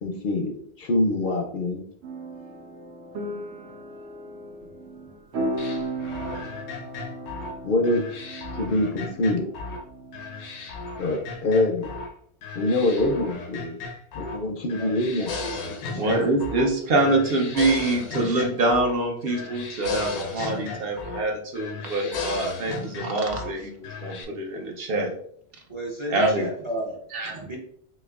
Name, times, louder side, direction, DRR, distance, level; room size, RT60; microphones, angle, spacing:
voice 1, 0.0-1.8 7.6-8.0 8.6-9.5 11.0-11.9 12.6-13.8 14.1-15.3, left 2 dB, 60° left, 2 dB, 0.6 m, -24 dB
sound 1, 2.0-11.7, right 1 dB, 80° right, 1.0 m, -36 dB
sound 2, 5.6-9.8 10.1-12.1 12.4-14.4 14.7-16.7 17.0-19.0 19.3-21.3 21.6-23.5 23.8-24.2, left 4 dB, 85° left, 0.9 m, -35 dB
voice 2, 14.8-16.3 20.5-20.9 21.8-22.3 25.7-27.0 27.2-27.6, right 1 dB, 35° right, -2 dB, 0.5 m, -35 dB
voice 3, 15.9-25.1 26.1-26.5 27.1-27.4, right 2 dB, 60° right, 1 dB, 0.9 m, -25 dB
4.2 x 2.8 x 2.3 m, 0.65 s
omnidirectional pair, 1.1 m